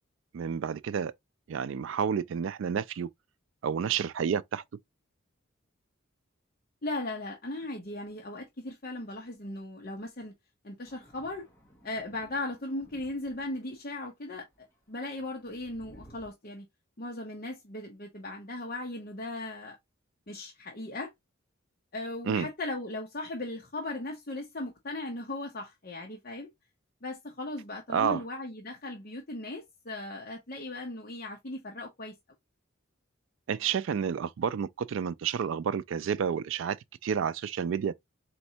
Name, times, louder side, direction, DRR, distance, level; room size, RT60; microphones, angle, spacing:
voice 1, 0.3-1.1 1.5-3.1 3.6-4.6 22.3-22.5 27.9-28.2 33.5-36.8 37.0-37.9, right 7 dB, 65° right, 0.3 m, -30 dB
voice 2, 6.8-10.3 10.6-11.4 11.8-16.7 17.0-19.8 20.3-21.1 21.9-26.5 27.0-32.2, left 2 dB, 45° left, 0.8 m, -37 dB
Thunder, 10.8-13.8 14.3-16.3, right 1 dB, 15° left, 1.1 m, -57 dB
4.2 x 3.2 x 2.7 m
head